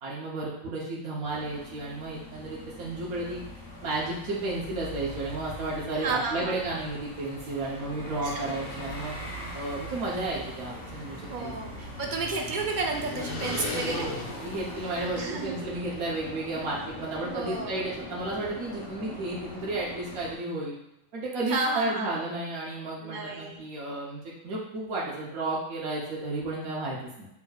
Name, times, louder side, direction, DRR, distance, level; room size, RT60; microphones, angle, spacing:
voice 1, 0.0-3.4 3.8-9.1 9.5-11.5 13.7-20.8 21.1-27.3, right 2 dB, 75° right, -6 dB, 1.3 m, -33 dB
sound 1, 1.2-20.4, left 1 dB, 20° left, 1.2 m, -42 dB
voice 2, 6.0-6.6 8.2-8.5 11.3-14.1 15.2-15.6 17.2-17.9 21.5-22.2 23.0-23.6, right 3 dB, 55° right, 1 dB, 0.5 m, -32 dB
sound 2, 11.0-15.6, left 3 dB, 60° left, 1.0 m, -38 dB
6.3 x 3.4 x 2.3 m, 0.85 s
omnidirectional pair, 1.5 m